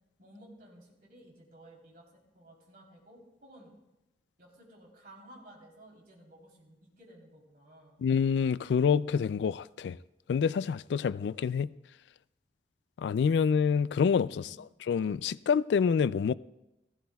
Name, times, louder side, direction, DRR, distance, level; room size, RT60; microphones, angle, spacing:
voice 1, 0.2-2.1 2.3-3.8 4.4-8.0 14.4-14.6, right 1 dB, 55° right, 3.5 m, -55 dB
voice 2, 8.0-10.0 10.3-11.7 13.0-14.4 14.9-16.3, left 6 dB, 80° left, 0.3 m, -27 dB
16.0 x 15.5 x 2.3 m
head